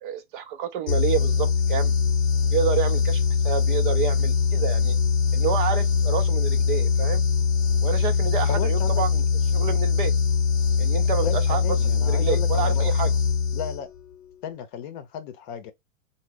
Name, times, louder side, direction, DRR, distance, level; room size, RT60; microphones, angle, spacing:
voice 1, 0.0-1.9 2.5-5.0 5.3-7.2 7.8-9.2 9.5-10.1 10.8-13.1, right 8 dB, 40° right, 0.4 m, -29 dB
sound 1, 0.9-14.0, left 5 dB, 80° left, 0.7 m, -22 dB
voice 2, 8.5-9.0 11.2-13.1 13.5-13.9 14.4-15.7, left 8 dB, 40° left, 0.7 m, -34 dB
3.2 x 2.1 x 3.7 m
hypercardioid pair, 125°, 40 cm